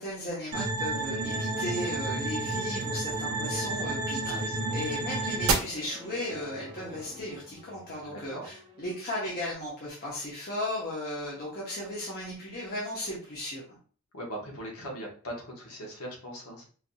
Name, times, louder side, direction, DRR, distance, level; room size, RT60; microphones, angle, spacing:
voice 1, 0.0-4.5 4.7-13.6, left 1 dB, 45° left, -6 dB, 0.9 m, -36 dB
sound 1, 0.5-5.5, right 3 dB, 70° right, 0.8 m, -30 dB
sound 2, 0.9-9.5, equal, 20° right, 0.9 m, -46 dB
voice 2, 4.3-4.8 8.1-8.5 14.1-16.7, right 1 dB, 80° left, 0 dB, 1.2 m, -40 dB
4.5 x 2.7 x 2.2 m, 0.41 s
head